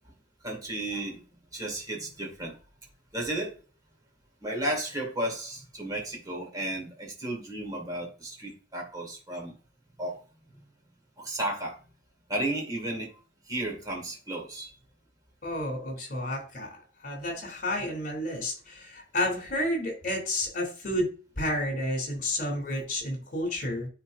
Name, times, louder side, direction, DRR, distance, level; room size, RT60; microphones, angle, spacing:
voice 1, 0.4-1.2 1.5-2.6 3.1-3.5 4.4-9.5 10.0-10.2 10.6-10.7 11.2-11.8 12.3-13.1 13.5-14.7 16.1-16.3, right 1 dB, 20° right, 0 dB, 2.3 m, -33 dB
voice 2, 15.4-23.9, left 1 dB, 45° left, 2 dB, 3.2 m, -31 dB
9.8 x 4.3 x 2.6 m, 0.36 s
head